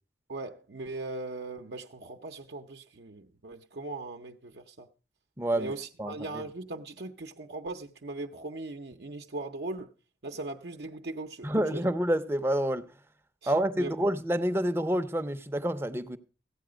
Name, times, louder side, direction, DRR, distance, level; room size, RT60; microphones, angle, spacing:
voice 1, 0.3-4.9 5.5-9.9 10.2-11.9 13.4-13.9, right 2 dB, 65° right, 0.7 m, -39 dB
voice 2, 5.4-5.7 6.0-6.4 11.4-12.8 13.5-16.2, right 1 dB, 15° right, 0.6 m, -28 dB
15.0 x 8.6 x 5.0 m
head